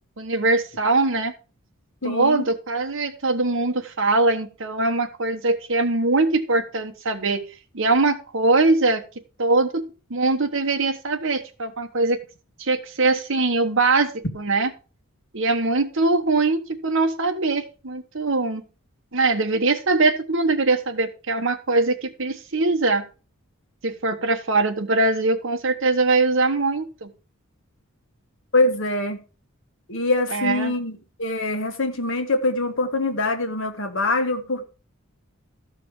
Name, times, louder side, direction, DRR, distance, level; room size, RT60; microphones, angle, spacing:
voice 1, 0.2-1.3 2.0-7.4 7.7-9.0 9.4-9.8 10.1-12.2 12.6-14.7 15.3-18.6 19.1-23.0 23.8-27.1 30.3-30.7, right 3 dB, 65° right, 1.2 m, -22 dB
voice 2, 2.0-2.5 28.5-29.2 29.9-34.6, left 2 dB, 60° left, 1.4 m, -24 dB
13.5 x 5.1 x 4.7 m
head